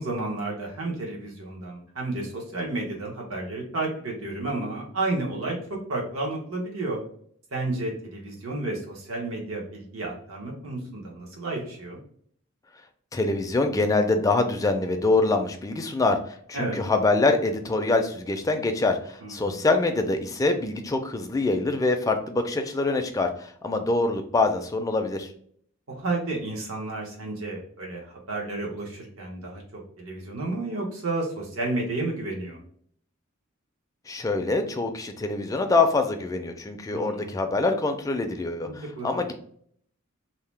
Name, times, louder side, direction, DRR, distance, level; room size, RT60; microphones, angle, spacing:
voice 1, 0.0-7.0 7.5-12.0 16.5-16.8 19.2-19.7 25.9-32.6 36.9-37.4 38.6-39.1, right 2 dB, 85° right, -1 dB, 1.0 m, -31 dB
voice 2, 13.1-25.3 34.1-39.3, left 3 dB, 15° left, 5 dB, 0.3 m, -25 dB
2.8 x 2.0 x 3.2 m, 0.62 s
head